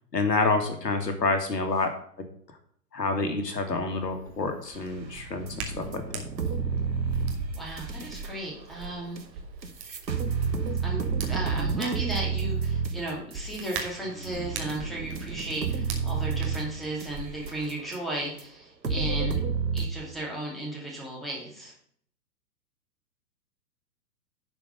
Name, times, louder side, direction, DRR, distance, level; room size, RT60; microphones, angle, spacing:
voice 1, 0.1-1.9 2.9-5.5 5.8-6.2, left 3 dB, 70° left, 6 dB, 1.8 m, -27 dB
Hands, 3.7-17.7, right 4 dB, 30° right, 1.6 m, -42 dB
sound 1, 5.0-8.3 9.2-9.3 9.6-18.0 18.4-18.5 18.8-19.9, right 5 dB, 85° right, 1.3 m, -30 dB
voice 2, 7.6-9.2 10.8-19.4 19.7-21.7, right 1 dB, ahead, -3 dB, 2.4 m, -35 dB
10.5 x 4.7 x 5.2 m, 0.62 s
figure-of-eight pair, 115°, 50 cm